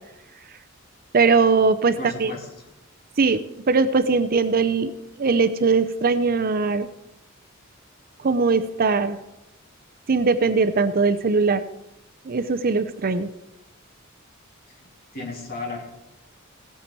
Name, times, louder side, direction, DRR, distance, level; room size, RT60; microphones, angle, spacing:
voice 1, 1.1-2.3 3.2-4.9 5.2-6.9 8.2-9.2 10.1-11.6 12.2-13.3, right 4 dB, 45° right, 11 dB, 0.6 m, -20 dB
voice 2, 2.0-2.4 15.1-15.8, left 2 dB, 45° left, -1 dB, 2.9 m, -33 dB
17.0 x 8.4 x 4.5 m, 0.90 s
head